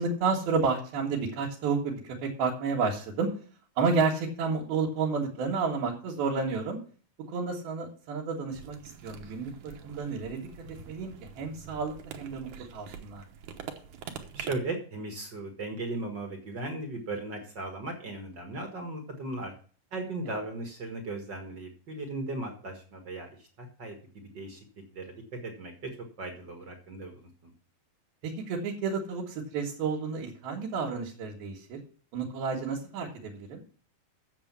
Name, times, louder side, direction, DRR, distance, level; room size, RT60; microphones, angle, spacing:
voice 1, 0.0-3.3 3.8-6.8 7.3-8.8 9.0-10.5 10.8-13.2 28.2-31.8 32.1-33.6, right 4 dB, 80° right, -2 dB, 3.4 m, -31 dB
sound 1, 8.5-14.6, right 8 dB, 65° right, 2.3 m, -45 dB
voice 2, 14.3-19.5 19.9-24.6 24.9-25.9 26.2-27.5, right 2 dB, 45° right, 4 dB, 1.6 m, -37 dB
8.8 x 7.1 x 7.3 m, 0.43 s
omnidirectional pair, 4.3 m